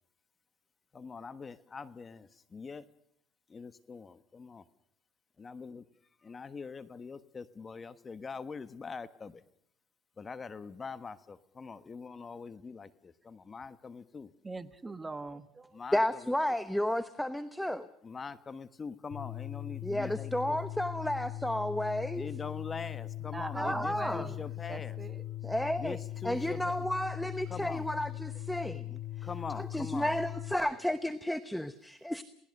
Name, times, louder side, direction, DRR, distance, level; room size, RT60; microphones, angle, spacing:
voice 1, 0.9-2.8 3.5-4.6 5.4-5.8 6.2-9.4 10.2-14.3 15.7-16.3 18.0-20.6 22.1-25.0 25.8-26.9 27.5-27.9 29.2-30.1, left 5 dB, 25° left, 13 dB, 1.2 m, -43 dB
voice 2, 14.4-15.8 23.3-24.4 24.7-25.2, right 3 dB, 15° right, 12 dB, 1.3 m, -40 dB
voice 3, 15.9-17.9 19.8-22.3 23.5-24.3 25.4-26.0 26.2-29.3 29.5-32.2, left 1 dB, 5° left, 12 dB, 0.9 m, -32 dB
sound 1, 19.1-30.5, left 13 dB, 60° left, 6.3 m, -40 dB
27.5 x 18.5 x 6.6 m, 0.71 s
supercardioid pair, 100°, 0 cm